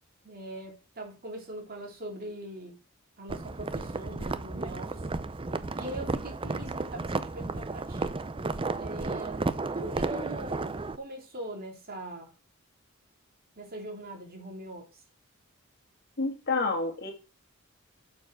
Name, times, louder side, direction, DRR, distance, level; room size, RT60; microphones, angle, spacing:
voice 1, 0.2-2.7 3.2-5.1 5.7-8.2 8.7-12.3 13.5-15.0, right 1 dB, 45° right, 3.3 m, -41 dB
sound 1, 3.3-11.0, right 3 dB, 25° right, 0.6 m, -33 dB
voice 2, 16.2-17.1, left 3 dB, 50° left, 2.5 m, -29 dB
7.5 x 6.9 x 6.0 m
head